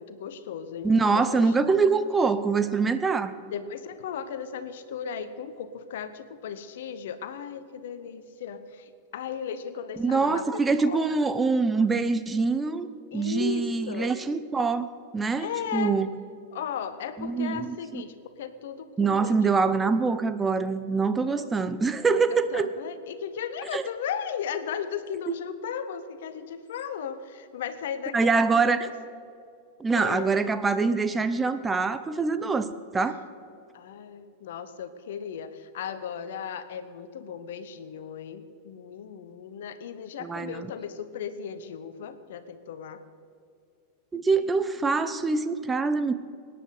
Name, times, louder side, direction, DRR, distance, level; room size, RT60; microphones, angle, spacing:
voice 1, 0.0-1.8 3.5-11.2 13.1-14.1 15.4-16.0 16.5-19.4 21.2-21.5 22.3-28.9 29.9-30.3 33.7-43.0, left 7 dB, 55° left, 11 dB, 1.1 m, -36 dB
voice 2, 0.8-3.3 10.0-12.9 13.1-14.9 15.1-16.1 17.2-18.0 19.0-22.7 23.7-23.8 25.3-25.4 28.1-28.9 29.8-33.2 40.2-40.7 44.1-46.1, right 4 dB, 15° right, 11 dB, 0.7 m, -24 dB
24.5 x 9.9 x 4.9 m, 2.3 s
figure-of-eight pair, 90°, 0 cm